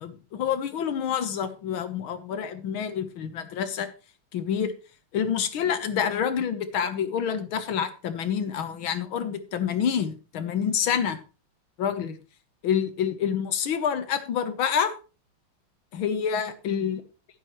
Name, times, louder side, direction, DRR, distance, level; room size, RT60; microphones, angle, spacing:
voice 1, 0.0-3.9 4.3-4.7 5.1-11.2 11.8-12.2 12.6-14.9 15.9-17.0, left 8 dB, 80° left, 10 dB, 1.9 m, -27 dB
12.0 x 11.0 x 3.1 m, 0.34 s
omnidirectional pair, 2.2 m